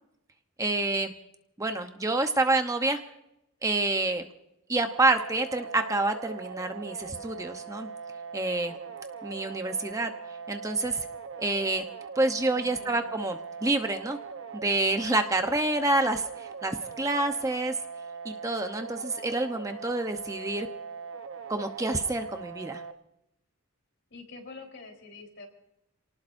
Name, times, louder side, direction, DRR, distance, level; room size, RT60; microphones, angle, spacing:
voice 1, 0.6-1.1 1.6-3.0 3.6-4.2 4.7-7.9 8.3-8.7 9.2-10.1 10.5-11.0 11.4-11.8 12.2-14.2 14.5-17.7 18.2-20.7 21.5-22.8, right 2 dB, 15° right, 6 dB, 0.9 m, -28 dB
sound 1, 4.9-22.9, right 6 dB, 60° right, 1.0 m, -41 dB
voice 2, 12.5-13.2 24.1-25.5, left 3 dB, 60° left, 2 dB, 4.0 m, -46 dB
29.0 x 18.5 x 2.7 m, 0.85 s
head